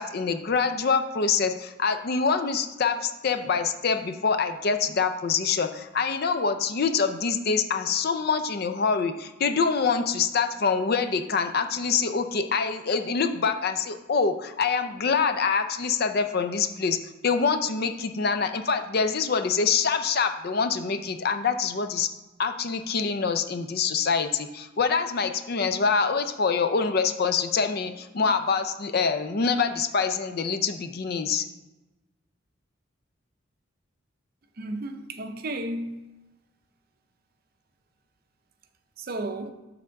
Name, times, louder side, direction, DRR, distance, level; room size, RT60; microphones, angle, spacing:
voice 1, 0.0-17.0 17.2-22.1 22.4-31.4, left 5 dB, 50° left, 0.5 m, -25 dB
voice 2, 34.6-36.1 39.0-39.5, right 1 dB, 45° right, 0.5 m, -33 dB
6.9 x 3.6 x 6.3 m
head